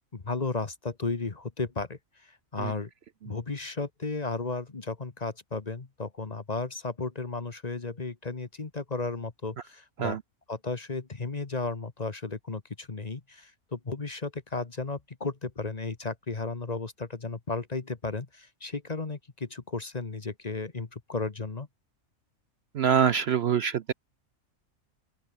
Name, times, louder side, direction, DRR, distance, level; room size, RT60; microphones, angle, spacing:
voice 1, 0.1-2.9 3.2-10.2 10.5-21.7, left 3 dB, 30° left, 1.3 m, -34 dB
voice 2, 22.7-23.9, right 8 dB, 60° right, 0.8 m, -25 dB
open air
omnidirectional pair, 1.4 m